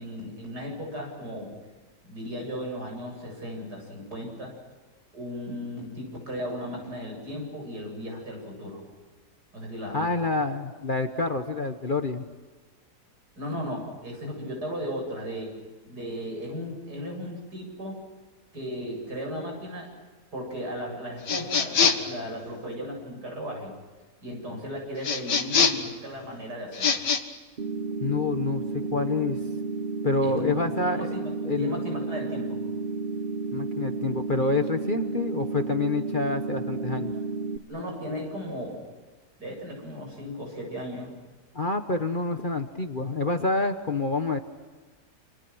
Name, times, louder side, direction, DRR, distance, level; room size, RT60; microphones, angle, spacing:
voice 1, 0.0-1.5 2.0-4.5 5.1-8.8 9.5-10.3 13.4-15.6 15.8-18.0 18.5-19.9 20.3-23.7 24.2-27.1 30.2-32.6 37.7-38.8 39.4-41.2, equal, 70° right, 1 dB, 8.8 m, -36 dB
voice 2, 9.9-12.3 28.0-29.4 30.0-31.1 31.4-31.8 33.5-37.1 41.5-44.4, left 3 dB, 35° left, 6 dB, 1.3 m, -27 dB
sound 1, 21.3-22.1 25.0-25.9 26.7-27.2, left 6 dB, 80° left, 2.3 m, -23 dB
sound 2, 27.6-37.6, right 4 dB, 35° right, 1.2 m, -32 dB
29.5 x 28.0 x 6.3 m, 1.3 s
omnidirectional pair, 1.8 m